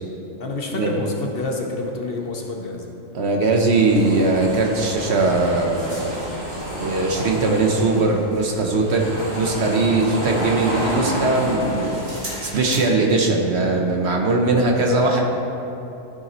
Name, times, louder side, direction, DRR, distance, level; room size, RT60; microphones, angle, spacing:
voice 1, 0.4-2.9, left 3 dB, 50° left, 1 dB, 0.9 m, -28 dB
voice 2, 3.1-6.1 6.7-9.1 9.3-12.0 12.4-15.2, right 3 dB, 60° right, 1 dB, 1.1 m, -20 dB
sound 1, 3.7-12.9, equal, 75° right, 2.6 m, -30 dB
13.5 x 6.8 x 3.0 m, 3.0 s
omnidirectional pair, 1.4 m